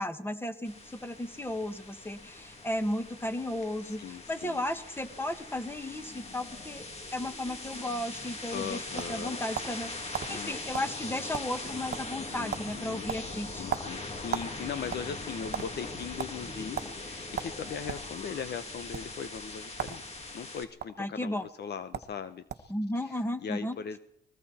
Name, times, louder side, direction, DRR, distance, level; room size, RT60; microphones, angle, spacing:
voice 1, 0.0-6.9 7.1-8.8 9.1-13.8 21.0-21.4 22.7-23.8, left 1 dB, 10° left, 9 dB, 1.9 m, -34 dB
sound 1, 0.6-20.6, left 2 dB, 30° left, 2.7 m, -41 dB
voice 2, 3.8-4.6 8.5-9.4 10.3-10.5 12.4-13.1 13.6-24.0, left 7 dB, 55° left, 12 dB, 1.0 m, -39 dB
sound 2, 8.4-9.8 10.1-10.3 10.7-10.9 11.2-11.7 11.9-12.2 12.5-12.7 13.1-14.5 14.8-15.7 16.2-16.3 16.8-16.9 17.4-18.1 18.8-19.0 19.7-20.0 20.3-20.9 21.6-21.7 21.9-22.1 22.5-22.8, right 8 dB, 55° right, 1.4 m, -35 dB
30.0 x 20.5 x 4.3 m, 0.72 s
cardioid pair, 90°, 20 cm